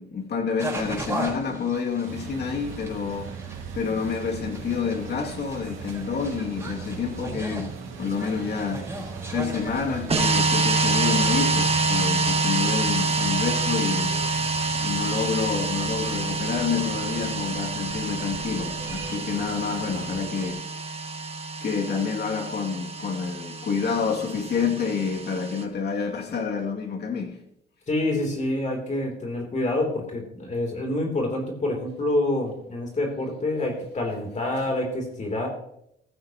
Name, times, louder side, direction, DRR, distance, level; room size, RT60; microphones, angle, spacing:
voice 1, 0.0-3.3 3.7-8.8 9.3-14.1 14.8-20.7 21.6-27.4, left 5 dB, 55° left, 2.5 m, -28 dB
sound 1, 0.6-20.5, right 2 dB, 15° right, 4.6 m, -40 dB
sound 2, 2.1-20.2, right 6 dB, 85° right, 2.2 m, -39 dB
sound 3, 10.1-25.6, right 3 dB, 30° right, 1.7 m, -27 dB
voice 2, 27.9-35.5, left 1 dB, 35° left, 3.3 m, -27 dB
15.0 x 15.0 x 3.0 m
cardioid pair, 90°, 20 cm